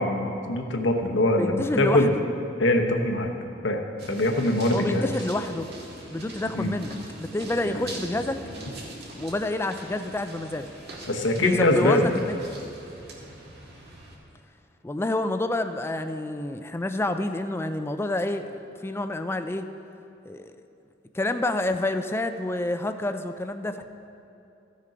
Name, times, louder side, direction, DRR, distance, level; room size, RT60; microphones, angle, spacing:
voice 1, 0.0-2.1 2.6-3.3 3.6-3.8 4.1-5.1 6.5-6.7 7.6-7.8 11.1-12.1, left 1 dB, 75° left, 3 dB, 1.0 m, -23 dB
voice 2, 1.4-2.2 4.7-5.7 6.1-8.4 9.1-10.7 11.4-12.4 14.8-19.7 20.3-20.5 21.1-23.8, left 1 dB, 15° left, 8 dB, 0.4 m, -28 dB
sound 1, 4.0-14.2, right 1 dB, 60° right, 1.9 m, -43 dB
14.5 x 6.6 x 5.0 m, 2.7 s
head